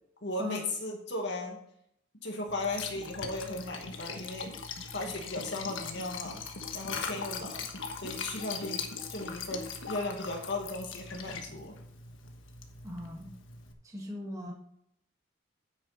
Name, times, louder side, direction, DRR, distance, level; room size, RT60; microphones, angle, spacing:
voice 1, 0.2-1.6 2.2-4.5 4.9-6.4 6.7-7.7 8.0-11.8, left 2 dB, 60° left, 1 dB, 2.0 m, -36 dB
Liquid, 2.5-13.7, left 5 dB, 90° left, 1.4 m, -40 dB
voice 2, 12.8-13.3 13.8-14.5, left 1 dB, 15° right, -1 dB, 1.7 m, -38 dB
9.7 x 8.2 x 4.1 m, 0.72 s
head